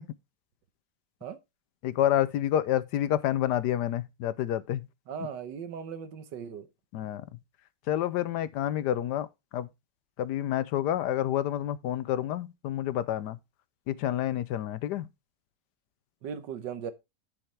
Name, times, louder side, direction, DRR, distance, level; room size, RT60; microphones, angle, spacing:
voice 1, 1.8-4.8 6.9-7.2 7.9-9.3 9.5-9.7 10.2-13.4 13.9-15.1, left 11 dB, 75° left, 1.2 m, -28 dB
voice 2, 5.1-6.7 16.2-16.9, right 7 dB, 80° right, 1.6 m, -38 dB
10.5 x 5.7 x 3.3 m
omnidirectional pair, 1.9 m